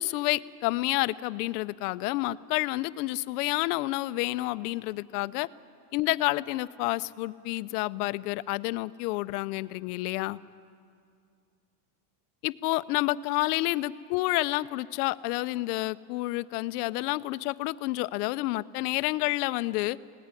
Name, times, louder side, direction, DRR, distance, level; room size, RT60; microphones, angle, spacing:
voice 1, 0.0-5.5 5.9-10.4 12.4-20.0, left 19 dB, 70° left, 16 dB, 0.8 m, -29 dB
27.0 x 18.5 x 9.8 m, 2.4 s
cardioid pair, 170°, 48 cm